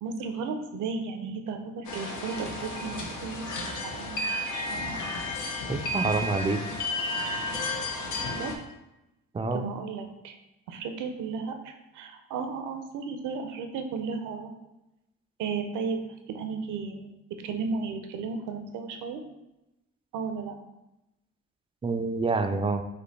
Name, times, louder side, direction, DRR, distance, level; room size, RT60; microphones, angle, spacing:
voice 1, 0.0-5.2 8.4-8.5 9.5-10.4 10.7-14.5 15.4-16.0 16.3-17.1 17.4-19.2 20.1-20.6, right 5 dB, 85° right, 6 dB, 0.6 m, -34 dB
sound 1, 1.9-8.5, left 2 dB, 85° left, 0.8 m, -32 dB
voice 2, 5.7-6.6 9.3-9.7 21.8-22.8, right 3 dB, 20° right, 7 dB, 0.3 m, -27 dB
5.2 x 2.2 x 4.1 m, 0.94 s
cardioid pair, 90°, 30 cm